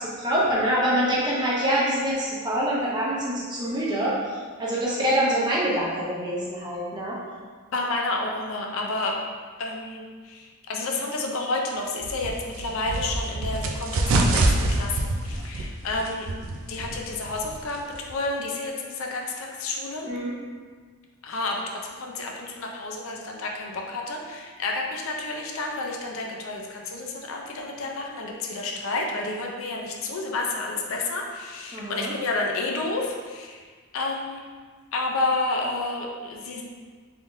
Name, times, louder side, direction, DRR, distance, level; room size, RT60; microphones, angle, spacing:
voice 1, 0.0-7.2 20.0-20.3 31.7-32.1, right 1 dB, 20° right, -6 dB, 0.7 m, -25 dB
voice 2, 7.7-9.1 9.6-16.3 16.5-20.1 21.2-21.6 22.0-33.6 33.9-34.4 34.9-36.6, left 2 dB, 65° left, 0 dB, 0.5 m, -30 dB
sound 1, 12.0-18.2, right 2 dB, 65° right, 0.4 m, -26 dB
3.6 x 3.6 x 2.5 m, 1.5 s
head